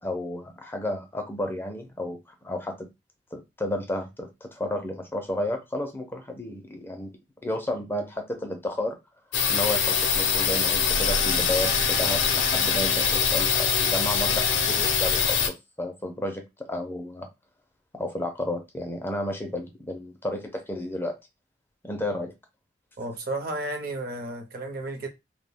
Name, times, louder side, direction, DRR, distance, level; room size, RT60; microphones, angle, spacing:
voice 1, 0.0-2.9 3.3-7.1 7.4-9.0 9.5-16.4 16.7-17.3 17.9-21.2 21.8-22.3, left 1 dB, 10° left, 0.4 m, -32 dB
sound 1, 9.3-15.5, left 6 dB, 65° left, 0.5 m, -23 dB
voice 2, 23.0-25.1, right 2 dB, 55° right, 0.6 m, -33 dB
2.2 x 2.1 x 3.3 m
head